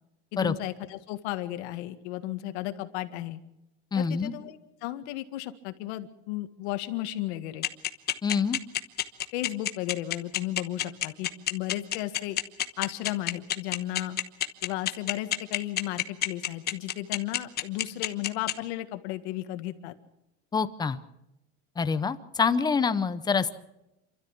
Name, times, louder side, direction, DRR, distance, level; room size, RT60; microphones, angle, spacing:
voice 1, 0.3-3.4 3.9-7.7 9.3-12.4 12.8-14.2 14.6-19.9, left 15 dB, 75° left, 9 dB, 1.8 m, -34 dB
voice 2, 3.9-4.3 8.2-8.6 20.5-21.0 21.8-23.5, left 5 dB, 10° left, 11 dB, 0.7 m, -26 dB
sound 1, 7.6-18.5, left 12 dB, 30° left, 1.1 m, -27 dB
28.0 x 13.0 x 7.2 m, 0.91 s
cardioid pair, 160°, 34 cm